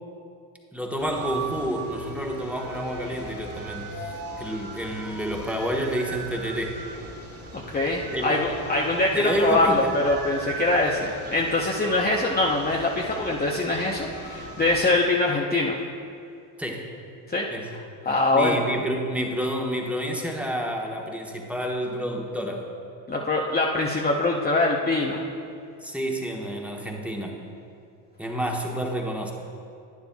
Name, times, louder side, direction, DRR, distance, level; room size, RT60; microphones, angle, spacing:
voice 1, 0.7-6.8 8.1-8.4 9.1-9.9 16.6-16.9 17.5-17.7 18.3-22.7 25.8-27.4 28.2-29.3, equal, 5° right, 0 dB, 1.2 m, -29 dB
sound 1, 1.0-14.9, right 3 dB, 45° right, 2.2 m, -38 dB
voice 2, 7.5-15.8 17.3-17.5 17.7-17.8 18.0-18.6 23.1-25.2, left 2 dB, 20° left, -2 dB, 0.8 m, -23 dB
11.5 x 9.4 x 2.3 m, 2.5 s
hypercardioid pair, 65°, 50 cm